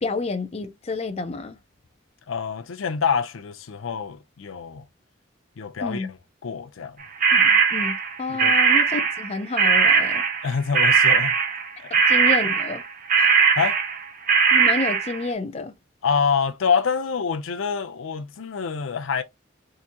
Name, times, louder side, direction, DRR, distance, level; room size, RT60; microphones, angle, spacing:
voice 1, 0.0-1.6 5.8-6.1 7.3-10.2 12.1-12.8 13.2-13.5 14.5-15.7, left 3 dB, 30° left, 0.5 m, -29 dB
voice 2, 2.3-4.9 5.6-6.2 6.4-7.0 8.3-8.6 10.4-11.4 11.9-12.0 13.5-13.8 16.0-19.2, left 6 dB, 85° left, 0.5 m, -26 dB
sound 1, 7.2-9.3 9.6-15.2, right 5 dB, 45° right, 0.7 m, -19 dB
3.8 x 2.6 x 2.9 m
head